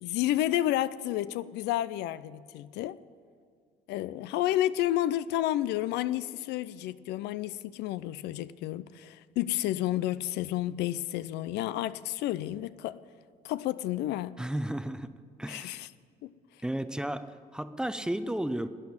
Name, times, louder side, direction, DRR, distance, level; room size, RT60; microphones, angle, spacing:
voice 1, 0.0-3.0 3.9-13.0 13.4-14.4 15.5-15.9 16.2-16.3, left 13 dB, 85° left, 0.5 m, -31 dB
voice 2, 14.4-15.1 15.4-15.8 16.6-18.7, right 1 dB, 5° right, 0.6 m, -33 dB
12.0 x 9.6 x 8.8 m
cardioid pair, 110°, 17 cm